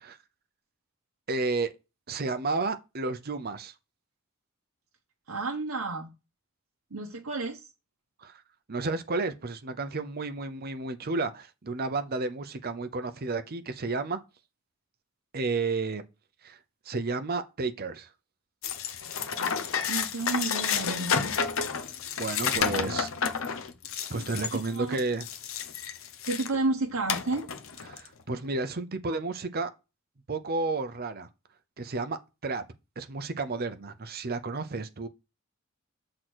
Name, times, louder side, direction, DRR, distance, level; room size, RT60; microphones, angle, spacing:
voice 1, 1.3-1.7 2.1-3.7 8.2-8.4 8.7-14.2 15.3-16.0 16.4-16.6 16.9-18.1 22.2-23.1 24.1-25.2 27.9-29.7 30.3-31.3 31.8-32.6 33.0-35.1, right 3 dB, 45° right, 0.7 m, -32 dB
voice 2, 5.3-6.1 6.9-7.7 19.9-21.4 24.1-24.3 24.7-25.0 26.2-27.5, right 3 dB, 90° right, 0.9 m, -31 dB
sound 1, 18.6-26.6 27.1-28.1, left 6 dB, 70° left, 0.8 m, -31 dB
6.3 x 3.8 x 6.1 m
head